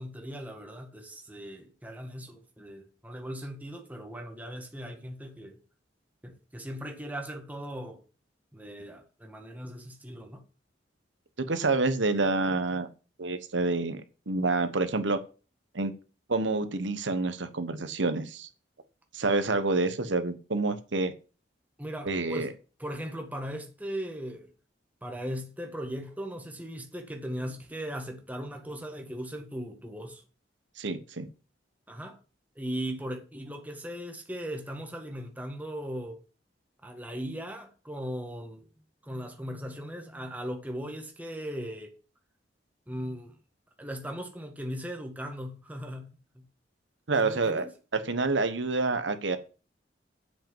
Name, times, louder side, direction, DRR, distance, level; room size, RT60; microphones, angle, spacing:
voice 1, 0.0-5.6 6.2-8.0 8.5-10.4 21.8-22.5 22.8-24.5 25.0-30.2 31.9-32.2 32.6-36.2 36.8-38.7 39.0-42.0 42.9-43.4 43.8-46.5 47.2-47.7, equal, 10° right, 1.7 m, -38 dB
voice 2, 11.5-12.9 13.2-14.0 14.3-15.2 15.7-15.9 16.3-18.5 19.1-21.1 22.0-22.5 30.8-31.3 47.1-47.6 48.0-49.4, right 3 dB, 85° right, 1.2 m, -28 dB
7.9 x 6.2 x 7.4 m
head